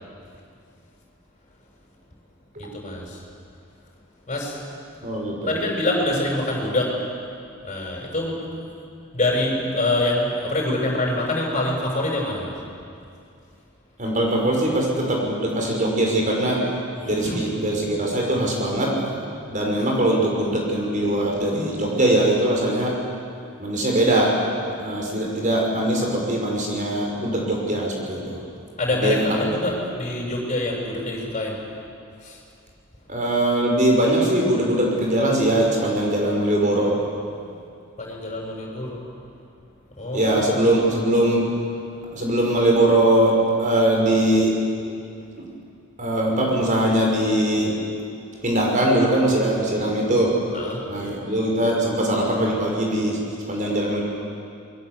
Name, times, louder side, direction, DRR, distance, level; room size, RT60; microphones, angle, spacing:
voice 1, 2.6-3.2 4.3-4.6 5.5-7.0 7.6-8.5 9.1-12.5 17.0-17.4 28.8-31.6 32.2-32.4 38.0-39.1 40.0-40.5 50.5-50.8, left 1 dB, 35° left, -2 dB, 7.1 m, -25 dB
voice 2, 5.0-5.6 14.0-16.6 17.0-19.2 19.5-23.0 23.6-24.4 24.8-28.4 28.9-29.3 33.1-37.0 40.1-41.5 42.1-44.6 46.0-47.8 48.4-50.4 50.9-53.2 53.5-54.0, right 1 dB, 35° right, -1 dB, 5.8 m, -21 dB
28.0 x 22.0 x 8.3 m, 2.4 s
head